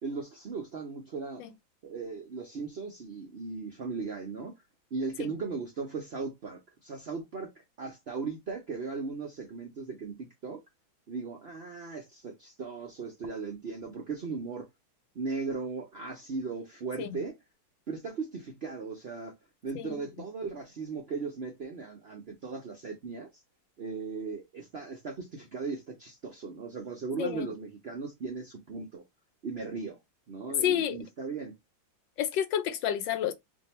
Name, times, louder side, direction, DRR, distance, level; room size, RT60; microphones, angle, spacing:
voice 1, 0.0-1.4 1.8-4.5 4.9-10.6 11.1-14.7 15.1-17.4 17.9-19.3 19.6-23.3 23.8-29.0 29.4-30.0 30.3-31.5, right 4 dB, 80° right, 0.5 m, -37 dB
voice 2, 27.2-27.5 30.6-31.0 32.2-33.3, left 10 dB, 75° left, 1.2 m, -30 dB
2.7 x 2.6 x 4.2 m
omnidirectional pair, 2.1 m